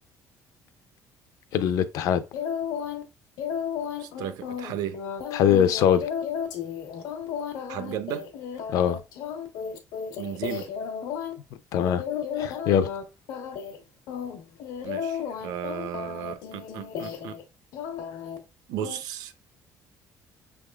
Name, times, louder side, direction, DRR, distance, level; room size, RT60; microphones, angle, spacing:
voice 1, 1.5-2.2 5.3-6.1 8.7-9.0 11.7-12.0 12.4-12.9, left 9 dB, 60° left, 0.5 m, -22 dB
sound 1, 2.3-3.0 3.4-11.3 11.7-13.0 13.3-13.8 14.1-17.4 17.7-18.4 18.8-19.0, left 7 dB, 80° left, 1.0 m, -33 dB
voice 2, 4.0-5.0 7.7-8.3 10.2-10.7 14.8-17.4 18.7-19.3, right 10 dB, 75° right, 0.6 m, -34 dB
6.1 x 3.5 x 2.3 m
cardioid pair, 175°, 6 cm